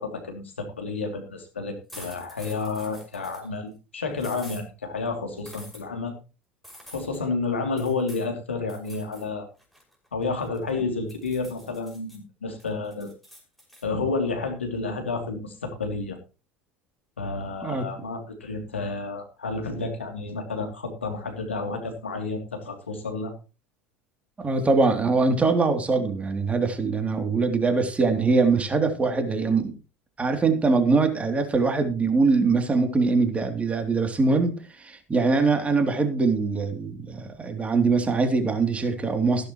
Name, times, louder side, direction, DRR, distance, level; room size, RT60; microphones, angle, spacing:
voice 1, 0.0-6.1 6.9-9.5 10.1-13.1 13.8-16.2 17.2-23.3, left 3 dB, 85° left, 4 dB, 2.8 m, -30 dB
sound 1, 1.9-3.5 4.2-4.6 5.5-5.8 6.6-7.2 7.8-8.3 8.7-9.3 9.6-10.7 11.1-12.2 12.6-13.8, equal, ahead, 5.9 m, -47 dB
voice 2, 24.4-29.7 30.2-39.5, right 4 dB, 20° right, 6 dB, 3.0 m, -23 dB
15.0 x 12.0 x 3.1 m, 0.32 s
figure-of-eight pair, 75°, 6 cm